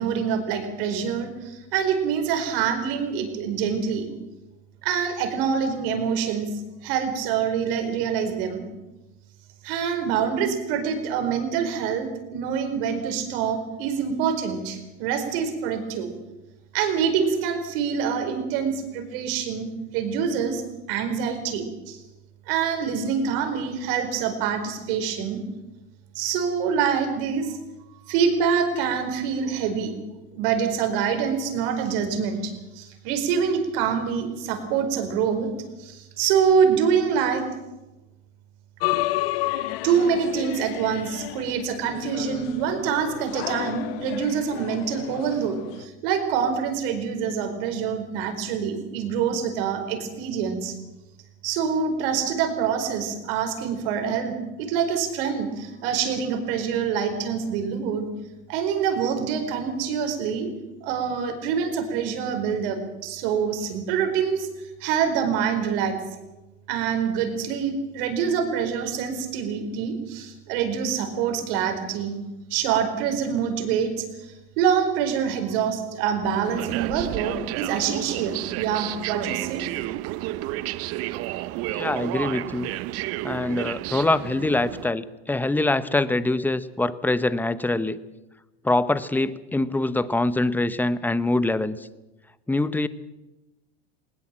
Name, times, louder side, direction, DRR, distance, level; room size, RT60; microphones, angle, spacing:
voice 1, 0.0-4.1 4.8-6.5 6.8-8.6 9.6-16.1 16.7-20.6 20.9-22.0 22.5-25.4 26.1-27.6 28.1-29.9 30.3-35.5 35.8-37.4 39.8-50.8 51.4-58.1 58.5-60.5 60.8-64.5 64.8-66.0 66.7-72.2 72.5-79.7, right 7 dB, 70° right, 7 dB, 4.6 m, -25 dB
sound 1, 38.8-45.8, left 17 dB, 70° left, 0.8 m, -31 dB
sound 2, 76.2-84.9, right 16 dB, 50° right, 0.8 m, -31 dB
voice 2, 81.7-82.7 83.2-88.0 88.6-91.9 92.5-92.9, left 2 dB, 5° left, 14 dB, 0.9 m, -24 dB
19.5 x 18.5 x 7.6 m, 1.0 s
supercardioid pair, 110°, 30 cm